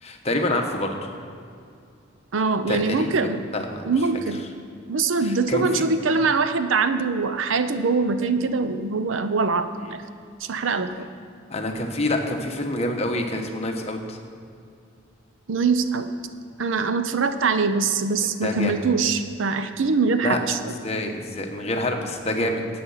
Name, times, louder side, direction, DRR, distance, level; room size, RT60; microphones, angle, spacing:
voice 1, 0.0-1.1 2.7-3.9 5.2-5.8 9.8-9.9 11.5-14.2 18.4-18.7 20.2-20.4 20.8-22.6, left 1 dB, 35° left, 3 dB, 1.1 m, -27 dB
voice 2, 2.3-3.4 3.8-4.4 4.9-10.0 10.4-11.1 15.5-16.1 16.6-20.7, right 4 dB, 75° right, 10 dB, 0.6 m, -23 dB
12.5 x 8.6 x 5.6 m, 2.4 s
head